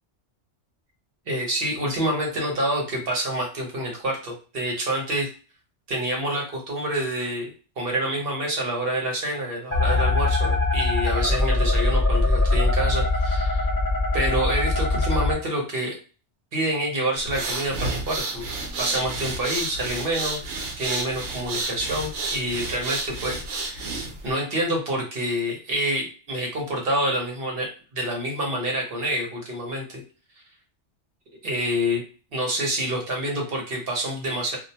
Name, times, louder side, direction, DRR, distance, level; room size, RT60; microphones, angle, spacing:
voice 1, 1.3-5.3 5.9-13.7 14.1-15.9 16.5-18.5 18.8-20.4 20.8-30.0 31.4-32.0 32.3-34.6, right 1 dB, 55° right, 0 dB, 1.0 m, -27 dB
sound 1, 9.7-15.3, left 2 dB, 10° left, 0.9 m, -22 dB
sound 2, 17.2-24.3, right 3 dB, 85° right, 1.0 m, -31 dB
2.5 x 2.1 x 2.7 m, 0.36 s
omnidirectional pair, 1.2 m